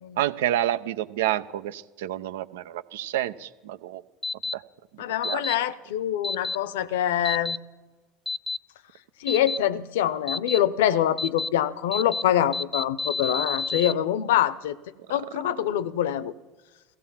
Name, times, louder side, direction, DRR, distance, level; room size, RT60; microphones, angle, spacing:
voice 1, 0.2-4.0 4.5-4.6 5.2-5.4, right 12 dB, 80° right, 0.6 m, -28 dB
sound 1, 4.2-4.5 5.2-5.5 6.2-6.6 7.2-7.6 8.3-8.6 9.3-9.6 10.3-10.6 11.2-11.5 11.9-12.2 12.5-13.9, left 3 dB, 10° left, 0.6 m, -29 dB
voice 2, 5.0-7.6 9.2-14.8 15.1-16.3, left 11 dB, 80° left, 0.7 m, -25 dB
16.5 x 15.0 x 5.7 m
hypercardioid pair, 75°, 0 cm